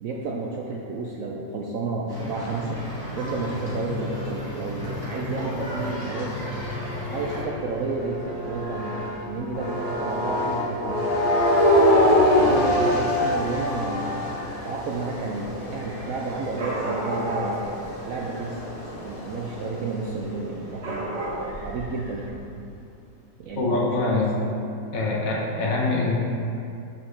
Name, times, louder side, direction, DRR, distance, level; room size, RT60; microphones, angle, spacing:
voice 1, 0.0-2.8 3.1-6.5 7.1-11.1 12.3-14.3 14.6-17.7 18.0-18.6 19.0-22.7 23.4-24.5, right 3 dB, 75° right, -2 dB, 0.7 m, -31 dB
sound 1, 2.1-7.4, left 1 dB, 15° left, 1.2 m, -33 dB
sound 2, 6.3-9.1 9.5-20.0, left 1 dB, 35° left, 0.6 m, -25 dB
Dog / Cat, 6.4-22.3, right 1 dB, 50° right, 1.0 m, -38 dB
voice 2, 23.5-24.3 24.9-26.1, left 3 dB, 55° left, -3 dB, 1.2 m, -24 dB
6.7 x 5.1 x 3.2 m, 2.6 s
omnidirectional pair, 1.9 m